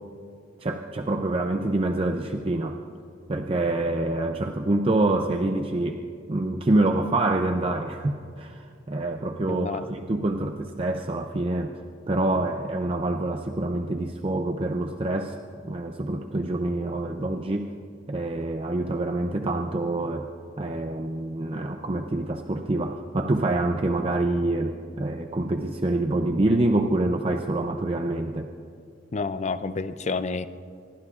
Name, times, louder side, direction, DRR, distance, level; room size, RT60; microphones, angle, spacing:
voice 1, 0.6-2.8 3.3-11.8 12.1-15.4 15.6-17.7 18.1-20.3 20.6-28.5, right 2 dB, 30° right, 4 dB, 0.6 m, -26 dB
voice 2, 9.5-9.8 29.1-30.5, left 4 dB, 35° left, 12 dB, 0.5 m, -29 dB
25.5 x 23.0 x 2.5 m, 2.4 s
head